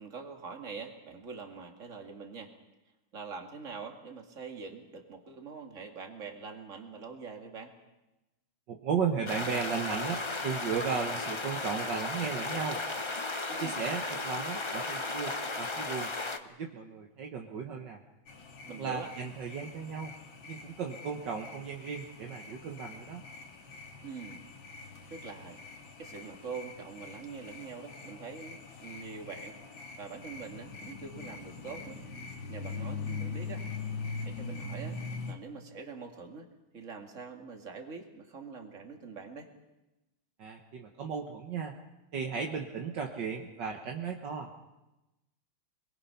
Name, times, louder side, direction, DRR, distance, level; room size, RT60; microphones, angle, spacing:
voice 1, 0.0-2.5 3.1-7.7 13.5-13.8 18.7-19.1 24.0-24.4 25.1-25.6 26.0-29.6 30.0-32.0 32.5-33.7 34.3-35.0 35.3-36.5 36.7-39.5, right 5 dB, 40° right, 4 dB, 2.5 m, -44 dB
voice 2, 8.7-12.8 13.6-16.1 16.6-18.0 18.8-20.1 20.5-23.3 40.4-41.7 42.1-44.5, right 6 dB, 65° right, 2 dB, 1.9 m, -35 dB
sound 1, 9.3-16.4, left 3 dB, 20° left, 0.7 m, -35 dB
sound 2, 18.3-35.3, left 4 dB, 80° left, 2.6 m, -43 dB
27.5 x 21.5 x 5.8 m, 1.0 s
omnidirectional pair, 2.1 m